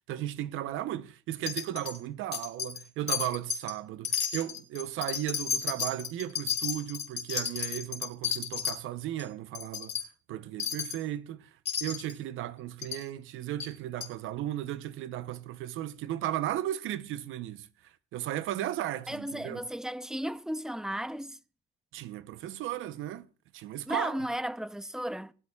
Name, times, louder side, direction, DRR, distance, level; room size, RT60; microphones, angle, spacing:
voice 1, 0.1-10.0 10.3-19.6 21.9-23.3 23.5-24.2, right 12 dB, 90° right, 0.8 m, -35 dB
Wind chime, 1.5-2.0 2.3-2.8 3.1-3.7 4.0-8.8 9.2-9.3 9.5-10.0 10.6-11.0 11.7-12.1 12.8-13.0 13.6-13.7 14.0-14.1, left 8 dB, 60° left, 2.6 m, -33 dB
voice 2, 19.1-21.4 23.9-25.3, equal, 5° right, 0.6 m, -34 dB
20.0 x 12.5 x 2.3 m
cardioid pair, 90°, 20 cm